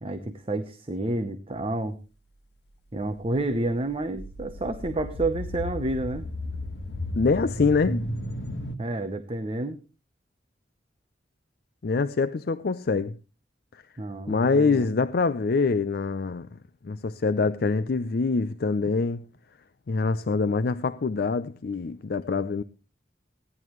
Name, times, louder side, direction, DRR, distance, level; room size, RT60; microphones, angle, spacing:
voice 1, 0.0-2.0 2.9-6.2 8.8-9.8 14.0-14.9, right 2 dB, 35° right, 0.8 m, -29 dB
sound 1, 3.4-8.8, left 1 dB, 90° left, 1.4 m, -34 dB
voice 2, 7.2-8.1 11.8-13.2 13.7-13.8 14.3-16.5 16.8-19.2 19.9-22.6, left 4 dB, 60° left, 0.5 m, -25 dB
16.5 x 11.0 x 3.1 m
head